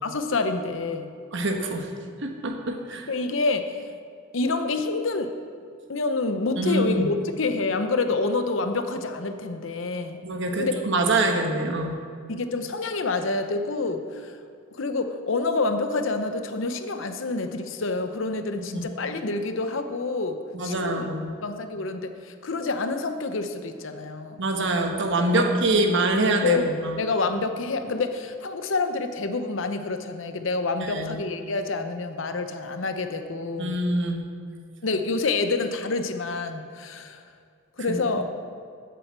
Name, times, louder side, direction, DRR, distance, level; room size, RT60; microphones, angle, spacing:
voice 1, 0.0-1.1 3.1-3.8 4.3-5.3 5.9-10.2 10.6-10.7 11.8-12.0 12.3-14.4 14.7-21.1 21.4-24.4 25.3-25.5 26.4-26.7 27.0-33.8 34.8-37.2 37.8-38.3, left 3 dB, 65° left, 8 dB, 0.8 m, -27 dB
voice 2, 1.3-1.9 2.2-3.1 6.6-7.1 10.2-12.0 18.7-18.8 20.5-21.3 24.4-27.0 30.8-31.2 33.6-34.2 37.9-38.0, right 2 dB, 60° right, 3 dB, 1.1 m, -25 dB
8.0 x 7.8 x 7.4 m, 2.2 s
head